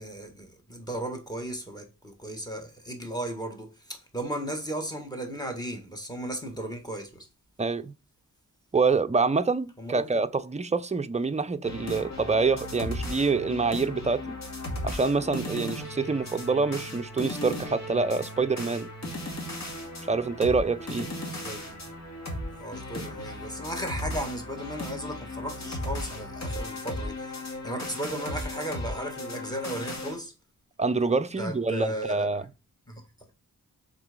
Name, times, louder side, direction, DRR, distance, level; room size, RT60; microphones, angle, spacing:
voice 1, 0.0-7.3 9.8-10.1 21.3-21.8 22.6-30.3 31.4-32.4 32.9-33.0, right 1 dB, 10° left, 1.8 m, -36 dB
voice 2, 7.6-7.9 8.7-14.4 14.8-18.9 20.1-21.1 30.8-32.5, right 4 dB, 20° right, 0.5 m, -26 dB
sound 1, 11.6-30.2, left 1 dB, 50° left, 2.2 m, -36 dB
6.0 x 4.1 x 5.2 m
wide cardioid pair, 85°, 34 cm